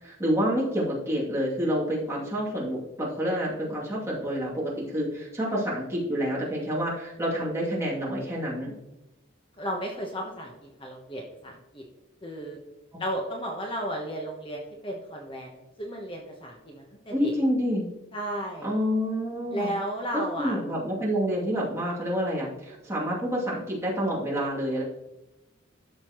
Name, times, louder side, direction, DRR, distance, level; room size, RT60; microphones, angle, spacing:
voice 1, 0.0-8.7 17.1-17.9 18.6-19.7 20.1-24.8, equal, 15° right, -6 dB, 2.7 m, -28 dB
voice 2, 9.6-11.8 12.2-12.6 13.0-17.3 18.1-18.7 19.5-20.6, equal, 25° left, 0 dB, 1.1 m, -34 dB
12.5 x 6.7 x 3.1 m, 1.0 s
head